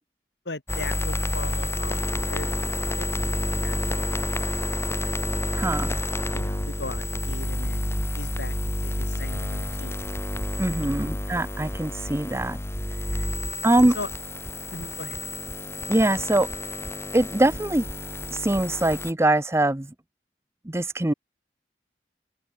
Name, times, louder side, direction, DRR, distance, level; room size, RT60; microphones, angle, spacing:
voice 1, 0.4-4.5 5.0-5.2 6.3-10.1 10.8-11.1 13.3-14.1 14.7-15.2, left 2 dB, 80° left, 2.9 m, -39 dB
sound 1, 0.7-19.1, left 1 dB, 15° left, 2.0 m, -29 dB
voice 2, 5.5-6.0 10.6-12.6 13.6-14.0 15.9-16.5 17.1-17.9 18.3-19.9 20.6-21.1, right 1 dB, 15° right, 0.7 m, -23 dB
open air
head